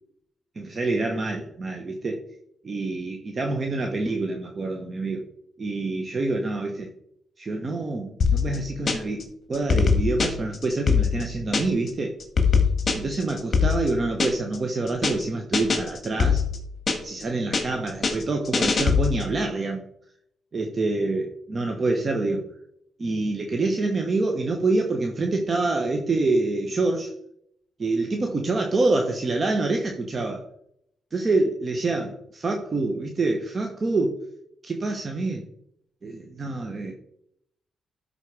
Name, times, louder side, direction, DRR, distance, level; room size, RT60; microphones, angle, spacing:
voice 1, 0.6-2.2 2.6-5.2 5.6-6.9 7.4-12.2 12.9-16.5 17.0-19.8 20.5-22.4 23.0-27.1 27.8-30.4 31.1-34.1 34.6-35.4 36.0-36.9, right 2 dB, 35° right, 3 dB, 1.0 m, -26 dB
sound 1, 8.2-9.2 9.5-11.9 12.2-14.6 14.9-15.2 15.5-17.2 17.5-19.3, left 5 dB, 40° left, 1.8 m, -22 dB
12.5 x 4.1 x 4.8 m, 0.74 s
cardioid pair, 110°, 0 cm